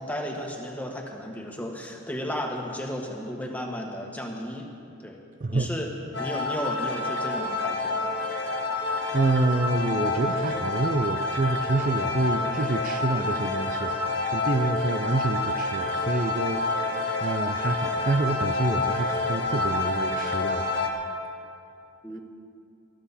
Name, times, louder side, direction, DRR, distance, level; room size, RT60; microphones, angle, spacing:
voice 1, 0.0-4.7 5.0-5.2 5.5-5.9 6.2-8.1 22.0-22.2, equal, 10° left, 0 dB, 1.6 m, -34 dB
sound 1, 6.1-20.9, left 2 dB, 55° left, 1.8 m, -28 dB
voice 2, 9.1-13.9 14.3-16.6 17.0-20.6, right 2 dB, 40° right, 6 dB, 0.5 m, -27 dB
20.0 x 14.0 x 4.3 m, 2.5 s
head